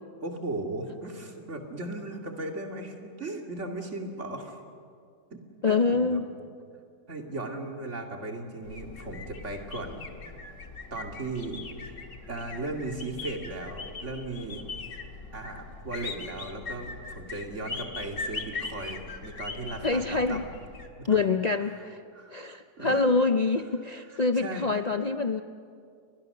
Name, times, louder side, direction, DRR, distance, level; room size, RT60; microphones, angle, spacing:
voice 1, 0.2-4.6 5.3-5.4 5.7-6.2 7.1-10.1 10.9-11.9 12.3-14.6 15.3-20.5 21.0-21.2 22.1-23.1 24.3-24.7, right 2 dB, 45° right, 3 dB, 2.7 m, -37 dB
voice 2, 5.6-6.3 19.8-20.4 21.1-22.0 22.3-25.4, left 3 dB, 85° left, 8 dB, 0.3 m, -25 dB
sound 1, 8.6-20.9, left 4 dB, 50° left, 1.9 m, -40 dB
29.5 x 22.0 x 6.7 m, 2.3 s
omnidirectional pair, 1.8 m